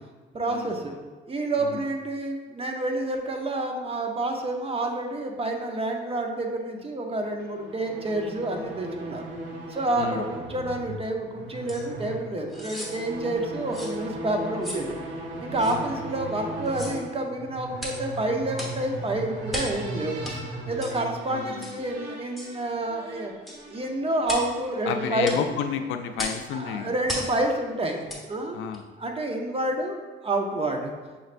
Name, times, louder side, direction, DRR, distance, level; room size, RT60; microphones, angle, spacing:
voice 1, 0.3-0.9 1.3-9.3 9.7-15.0 15.4-23.3 23.7-25.4 26.5-28.6 29.0-30.0 30.2-30.9, right 2 dB, 30° right, 3 dB, 0.7 m, -29 dB
sound 1, 7.4-26.4, right 1 dB, 70° right, 0.8 m, -38 dB
sound 2, 11.7-11.8 12.5-12.9 13.7-14.0 14.6-14.9 15.6-15.8 16.6-17.0 17.8-18.0 18.5-18.8 19.5-19.8 20.2-20.4 20.8-21.0 21.6-21.8 22.4-22.5 23.5-23.6 24.2-24.5 25.2-25.4 26.2-26.4 27.1-27.3 28.1-28.2 28.7-28.8, left 1 dB, ahead, 1.1 m, -35 dB
voice 2, 21.3-21.7 24.8-27.0 28.5-28.8, left 7 dB, 80° left, 7 dB, 0.4 m, -31 dB
6.2 x 3.2 x 2.5 m, 1.4 s
cardioid pair, 90°, 20 cm